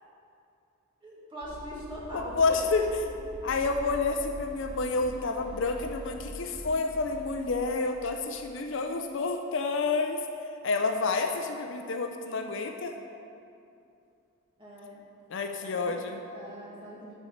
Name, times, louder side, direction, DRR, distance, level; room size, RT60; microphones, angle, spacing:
voice 1, 1.0-2.9 14.6-15.0 15.6-16.0 16.3-17.1, equal, 20° right, -7 dB, 1.8 m, -41 dB
sound 1, 1.4-8.8, equal, ahead, 0.7 m, -44 dB
voice 2, 2.1-2.9 3.4-10.2 10.6-12.9 15.3-16.2, left 4 dB, 55° left, 5 dB, 0.5 m, -29 dB
9.3 x 4.3 x 6.5 m, 2.6 s
head